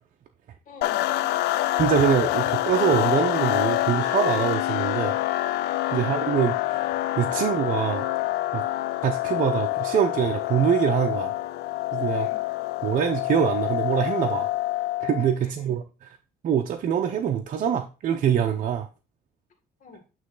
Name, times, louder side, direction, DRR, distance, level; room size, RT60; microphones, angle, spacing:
voice 1, 0.7-1.7 12.1-12.4 15.4-15.8 19.8-20.0, left 4 dB, 50° left, 5 dB, 1.8 m, -47 dB
sound 1, 0.8-15.4, left 15 dB, 80° left, 0.5 m, -26 dB
voice 2, 1.8-5.2 5.9-8.1 8.5-8.7 9.0-11.4 11.9-12.3 12.8-14.5 15.0-15.8 16.4-18.9, right 8 dB, 50° right, 3 dB, 0.7 m, -24 dB
9.1 x 3.2 x 3.9 m, 0.31 s
cardioid pair, 110°, 17 cm